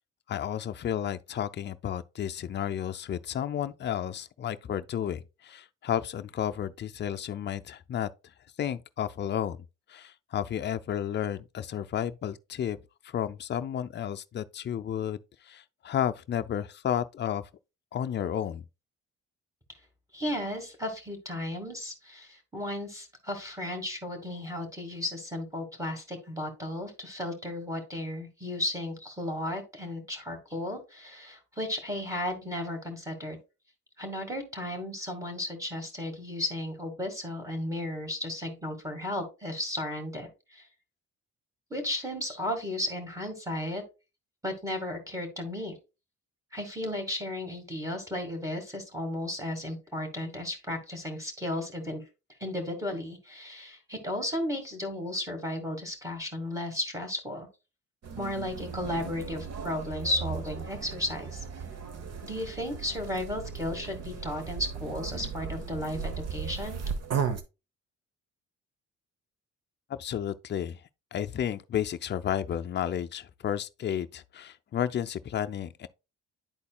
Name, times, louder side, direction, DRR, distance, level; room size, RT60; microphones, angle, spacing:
voice 1, 0.3-8.1 8.6-9.6 9.9-12.8 13.1-15.2 15.5-17.4 17.9-18.6 70.0-70.8 71.1-75.9, left 9 dB, 35° left, 0.5 m, -32 dB
voice 2, 20.1-33.4 34.0-40.7 41.7-43.8 44.4-45.7 46.5-52.0 52.4-57.5 58.2-61.4 62.2-66.8, left 1 dB, 10° right, 1.9 m, -34 dB
sound 1, 58.0-67.4, right 6 dB, 55° right, 1.0 m, -36 dB
10.5 x 4.1 x 2.3 m
cardioid pair, 90°, 30 cm